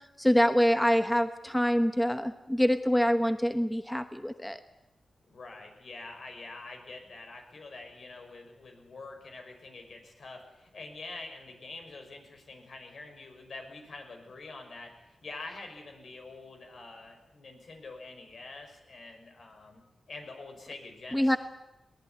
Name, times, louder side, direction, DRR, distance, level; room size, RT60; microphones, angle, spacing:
voice 1, 0.2-4.6 21.1-21.4, equal, 5° left, 9 dB, 1.1 m, -25 dB
voice 2, 5.3-19.8 20.1-21.4, left 3 dB, 65° left, 4 dB, 5.8 m, -46 dB
22.5 x 19.0 x 9.6 m, 0.98 s
wide cardioid pair, 95°, 0 cm